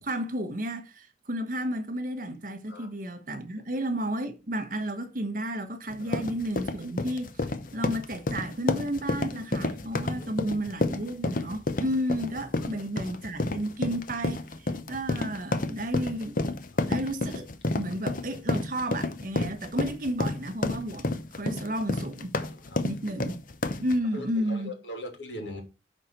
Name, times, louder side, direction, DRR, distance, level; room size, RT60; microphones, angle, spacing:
voice 1, 0.0-7.5 7.7-16.4 16.9-17.5 17.8-22.4 22.8-23.4 23.8-24.7, equal, 45° right, 1.2 m, -32 dB
sound 1, 5.9-24.0, left 2 dB, 45° left, 0.8 m, -30 dB
voice 2, 10.1-10.5 12.6-12.7 16.7-17.0 17.9-18.0 22.4-22.8 24.1-25.6, left 1 dB, 75° left, 2.8 m, -41 dB
11.0 x 4.2 x 4.5 m
head